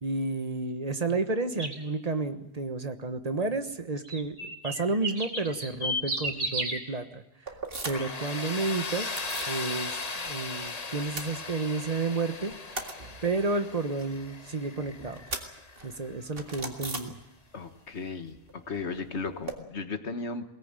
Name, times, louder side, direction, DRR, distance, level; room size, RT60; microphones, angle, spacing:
voice 1, 0.0-7.2 7.8-9.1 9.5-12.7 13.2-15.2 15.8-17.1, right 3 dB, 35° right, 8 dB, 1.4 m, -31 dB
sound 1, 1.6-1.8 4.0-6.8, right 1 dB, 85° right, 3.5 m, -32 dB
sound 2, 7.5-8.2 8.5-9.6 9.9-10.7 11.0-12.0 12.3-17.7 17.9-19.6, right 3 dB, 60° right, 2.3 m, -40 dB
Tools, 7.9-16.6, left 3 dB, 35° left, 1.2 m, -38 dB
voice 2, 17.5-20.5, left 4 dB, 90° left, 8 dB, 1.8 m, -35 dB
22.0 x 18.0 x 9.0 m, 0.96 s
omnidirectional pair, 1.1 m